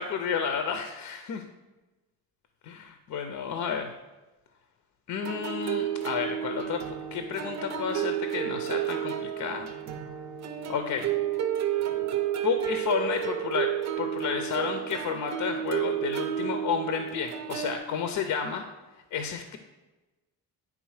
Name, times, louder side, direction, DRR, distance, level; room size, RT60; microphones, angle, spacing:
voice 1, 0.0-1.4 2.6-3.9 5.1-9.7 10.7-11.1 12.4-13.7 14.0-18.6 19.1-19.6, left 7 dB, 55° left, 7 dB, 0.6 m, -31 dB
sound 1, 5.2-17.8, right 10 dB, 45° right, 0.6 m, -31 dB
9.2 x 3.7 x 4.8 m, 1.1 s
cardioid pair, 170°, 36 cm